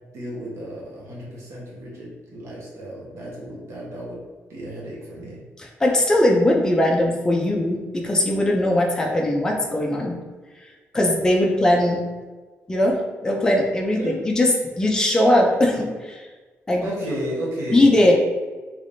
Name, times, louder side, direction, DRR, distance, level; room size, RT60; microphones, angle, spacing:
voice 1, 0.1-4.2 4.5-5.4 13.9-14.2 16.8-17.8, right 1 dB, 70° right, -4 dB, 1.1 m, -33 dB
voice 2, 5.6-10.2 10.9-12.0 12.7-16.2 16.7-16.9 17.7-18.1, left 1 dB, 15° left, -1 dB, 0.4 m, -20 dB
3.3 x 3.1 x 2.6 m, 1.3 s
wide cardioid pair, 160°, 5 cm